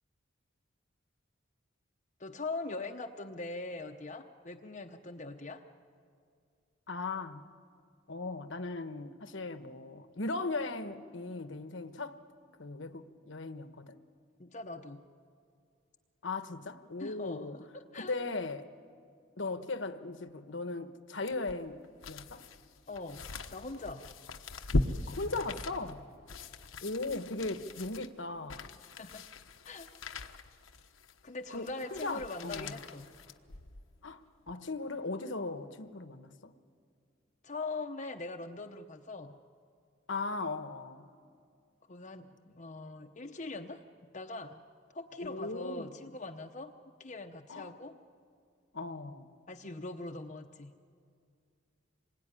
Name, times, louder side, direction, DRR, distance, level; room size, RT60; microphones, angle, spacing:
voice 1, 2.2-5.6 14.4-15.0 17.0-18.1 22.9-24.1 29.0-29.2 29.6-30.4 31.2-33.1 37.4-39.4 41.9-43.8 44.1-44.6 44.9-46.7 47.0-48.0 49.5-50.7, left 3 dB, 35° left, 0.8 m, -42 dB
voice 2, 6.9-7.4 8.1-12.2 12.6-14.0 16.2-17.6 17.9-18.7 19.4-21.8 22.1-22.5 25.1-26.0 26.8-28.7 31.5-32.8 34.0-36.3 40.1-41.1 45.2-46.1 47.5-47.8 48.7-49.3, left 3 dB, 65° left, 1.2 m, -38 dB
sound 1, 21.3-33.9 34.4-34.5, left 2 dB, 85° left, 1.2 m, -39 dB
26.5 x 22.5 x 9.9 m
head